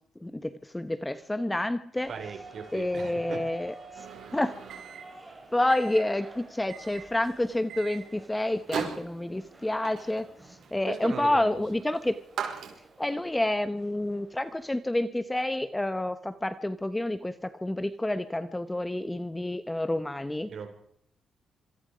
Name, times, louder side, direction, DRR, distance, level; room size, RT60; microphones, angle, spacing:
voice 1, 0.2-2.1 2.7-3.7 4.3-4.5 5.5-12.1 13.0-20.5, left 1 dB, 10° left, 12 dB, 0.9 m, -29 dB
sound 1, 1.9-14.7, right 3 dB, 15° right, 6.0 m, -51 dB
voice 2, 2.1-3.4 10.8-11.6 20.5-20.7, right 6 dB, 50° right, 4 dB, 5.5 m, -38 dB
Microwave oven, 3.9-13.2, right 7 dB, 75° right, 5.4 m, -41 dB
26.5 x 22.5 x 5.1 m, 0.69 s
cardioid pair, 155°, 0 cm